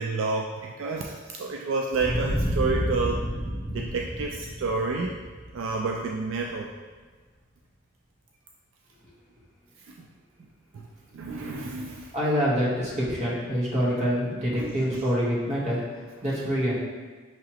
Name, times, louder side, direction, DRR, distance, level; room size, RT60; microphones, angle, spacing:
voice 1, 0.0-3.2 3.7-5.1 5.5-6.7 10.0-10.1 10.7-10.9 11.1-12.1 14.5-15.0, right 3 dB, 75° right, 0 dB, 0.3 m, -30 dB
sound 1, 1.9-6.5, equal, ahead, 0.6 m, -30 dB
voice 2, 12.1-16.7, equal, 35° right, -7 dB, 1.2 m, -26 dB
5.8 x 2.9 x 2.9 m, 1.4 s
head